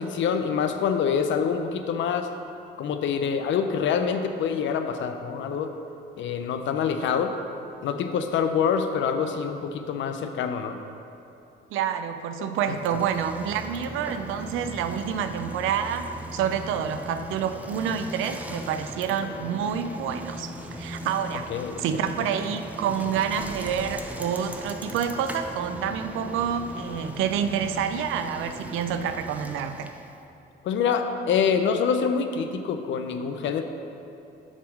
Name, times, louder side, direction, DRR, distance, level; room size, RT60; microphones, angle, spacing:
voice 1, 0.0-2.3 2.8-5.7 6.2-7.3 7.8-10.8 12.4-12.8 21.5-21.8 30.6-33.6, left 6 dB, 70° left, 7 dB, 0.6 m, -26 dB
voice 2, 11.7-21.5 21.8-29.9, right 8 dB, 90° right, 8 dB, 0.5 m, -28 dB
Bicycle, 12.6-30.2, equal, 5° right, 0.6 m, -39 dB
7.3 x 3.6 x 6.2 m, 2.8 s
cardioid pair, 90°, 20 cm